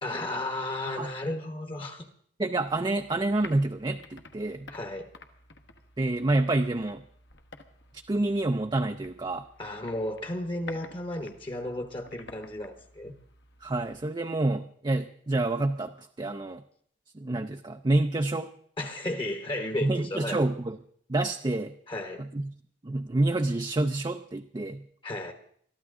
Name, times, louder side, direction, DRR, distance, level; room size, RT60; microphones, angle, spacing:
voice 1, 0.0-2.1 4.7-5.1 9.6-13.1 18.8-20.4 21.9-22.3 25.0-25.3, left 1 dB, 30° left, 7 dB, 1.1 m, -34 dB
voice 2, 2.4-4.7 6.0-7.0 8.1-9.5 13.6-16.6 17.1-18.5 19.8-20.8 21.1-21.7 22.2-22.5 22.8-24.8, right 2 dB, 25° right, 6 dB, 0.5 m, -28 dB
sound 1, 2.7-14.1, left 3 dB, 65° left, 1.3 m, -51 dB
21.5 x 13.5 x 3.7 m, 0.62 s
head